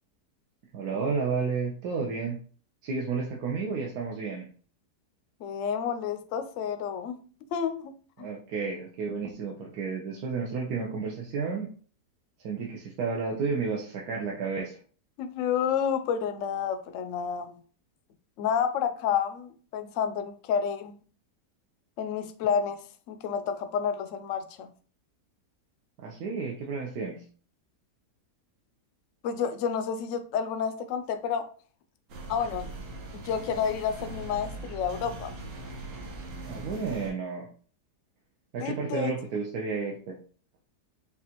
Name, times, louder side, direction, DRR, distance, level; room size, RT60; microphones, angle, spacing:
voice 1, 0.7-2.4 2.8-4.5 8.2-11.7 12.4-14.8 26.0-27.2 36.5-37.5 38.5-40.2, right 5 dB, 70° right, 1.2 m, -32 dB
voice 2, 5.4-7.2 7.5-7.9 8.2-8.3 15.2-17.6 18.4-21.0 22.0-22.8 23.1-24.7 29.2-31.5 32.3-32.7 33.1-35.3 38.6-39.1, left 7 dB, 70° left, 0.7 m, -30 dB
sound 1, 32.1-37.1, right 2 dB, 90° right, 1.6 m, -40 dB
5.8 x 2.4 x 2.9 m
omnidirectional pair, 1.8 m